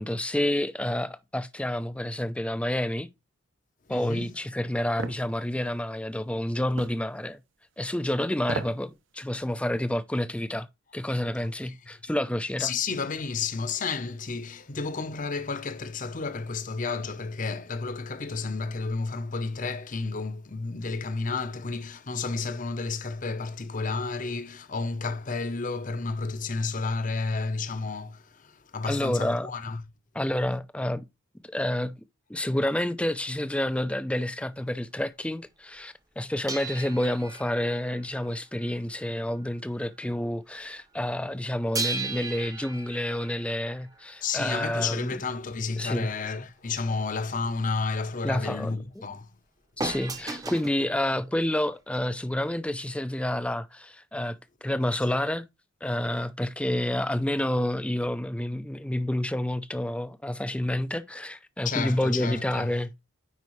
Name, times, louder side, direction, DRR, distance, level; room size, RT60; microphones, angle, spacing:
voice 1, 0.0-3.1 3.9-7.4 7.8-10.7 10.9-12.7 28.8-29.5 30.1-31.1 31.5-31.9 32.3-45.1 45.8-46.1 48.2-48.8 49.8-55.4 55.8-62.9, left 1 dB, 5° left, 0.4 m, -29 dB
voice 2, 3.9-4.3 11.4-11.8 12.6-29.8 44.2-49.3 61.6-62.8, left 4 dB, 40° left, 0.7 m, -31 dB
sound 1, 5.0-5.2 6.8-7.0 8.4-8.8 9.2-9.3, right 4 dB, 60° right, 0.6 m, -34 dB
sound 2, 36.5-39.6 39.9-40.1 41.8-44.5 49.8-50.8 51.7-51.8, right 3 dB, 15° right, 0.8 m, -36 dB
9.5 x 4.7 x 3.1 m
head